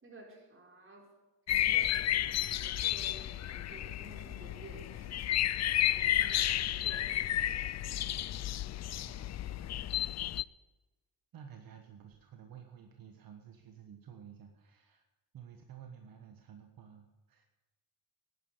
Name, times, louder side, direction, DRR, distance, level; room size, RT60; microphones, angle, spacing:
voice 1, 0.0-1.1 1.5-5.3 5.9-7.5, right 2 dB, 35° right, 0 dB, 4.5 m, -53 dB
sound 1, 1.5-10.4, left 12 dB, 50° left, 0.4 m, -32 dB
voice 2, 9.0-10.0 11.3-15.0 15.3-17.4, right 8 dB, 70° right, 4 dB, 1.5 m, -53 dB
11.5 x 10.0 x 9.7 m, 1.1 s
cardioid pair, 115°, 36 cm